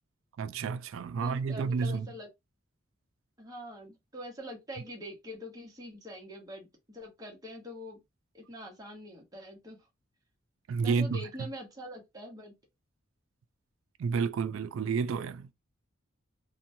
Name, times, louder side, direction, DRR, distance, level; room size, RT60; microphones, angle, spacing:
voice 1, 0.4-2.1 10.7-11.5 14.0-15.5, right 5 dB, 75° right, 0.3 m, -30 dB
voice 2, 1.1-2.3 3.4-8.0 8.3-9.8 10.8-12.5, equal, 20° right, 0.9 m, -44 dB
2.8 x 2.2 x 2.6 m
head